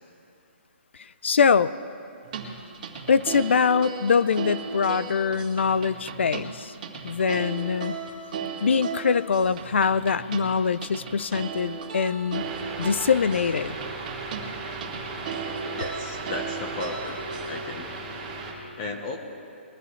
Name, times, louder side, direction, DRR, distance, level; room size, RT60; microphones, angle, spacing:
voice 1, 1.0-1.7 3.1-6.7 7.0-8.0 8.6-12.5 12.8-13.7, left 6 dB, 70° left, 16 dB, 0.6 m, -23 dB
sound 1, 2.2-17.6, right 6 dB, 35° right, 2.0 m, -36 dB
sound 2, 12.3-18.5, right 3 dB, 15° right, 2.5 m, -36 dB
voice 2, 15.8-17.2 17.5-17.9 18.8-19.2, left 3 dB, 25° left, 3 dB, 1.0 m, -34 dB
22.0 x 15.0 x 3.2 m, 2.6 s
hypercardioid pair, 165°, 7 cm